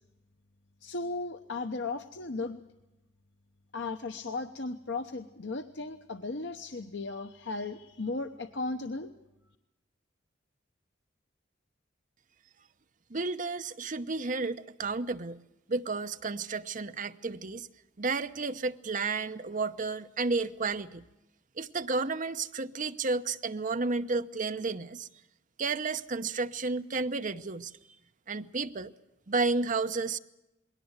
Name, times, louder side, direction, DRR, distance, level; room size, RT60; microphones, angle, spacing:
voice 1, 0.8-2.6 3.7-9.1, left 3 dB, 65° left, 0.9 m, -36 dB
voice 2, 13.1-15.4 15.7-17.7 18.0-21.0 21.6-25.1 25.6-27.7 28.3-28.9 29.3-30.2, right 3 dB, 40° right, 0.8 m, -32 dB
21.0 x 18.0 x 8.1 m
head